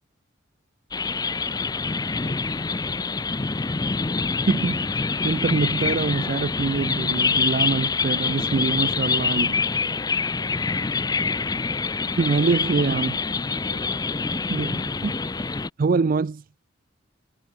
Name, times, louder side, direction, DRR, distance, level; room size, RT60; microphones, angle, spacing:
sound 1, 0.9-15.7, left 4 dB, 20° left, 0.5 m, -26 dB
voice 1, 2.0-2.6 5.3-5.4 10.3-11.0 13.4-13.9, right 2 dB, 75° right, 3.3 m, -49 dB
voice 2, 4.5-4.9 5.2-9.5 12.2-13.2 14.3-15.1 15.8-16.4, right 4 dB, 45° right, 0.4 m, -24 dB
head